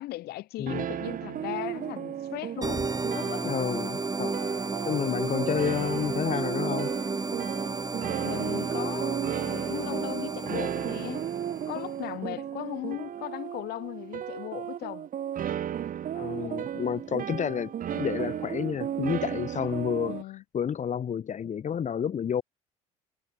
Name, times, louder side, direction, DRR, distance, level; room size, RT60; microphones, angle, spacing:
voice 1, 0.0-3.6 5.1-5.5 8.2-11.3 11.7-15.1 20.0-20.4, left 17 dB, 60° left, 3.3 m, -38 dB
sound 1, 0.7-20.2, right 10 dB, 50° right, 4.1 m, -34 dB
sound 2, 2.6-12.0, right 3 dB, 20° right, 5.9 m, -32 dB
voice 2, 3.4-4.3 4.9-6.9 16.1-20.2 20.5-22.4, left 8 dB, 40° left, 4.2 m, -30 dB
hypercardioid pair, 65°, 18 cm